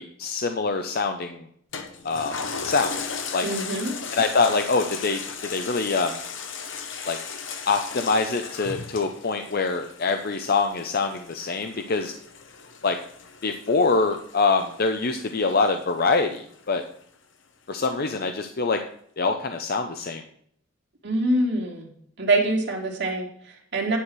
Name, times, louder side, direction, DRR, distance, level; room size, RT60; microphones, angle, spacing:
voice 1, 0.0-1.4 2.0-2.3 2.6-2.9 3.3-3.5 4.1-5.2 5.5-6.2 7.1-7.2 7.7-12.1 12.8-13.0 13.4-16.8 17.7-18.8 19.2-20.2, left 4 dB, 50° left, 6 dB, 0.7 m, -24 dB
Toilet flush, 1.7-16.5 17.0-17.1, left 5 dB, 65° left, 1.1 m, -37 dB
voice 2, 3.4-3.9 21.0-21.9 22.2-24.0, right 2 dB, 60° right, 0 dB, 2.2 m, -25 dB
10.0 x 4.9 x 6.2 m, 0.65 s
head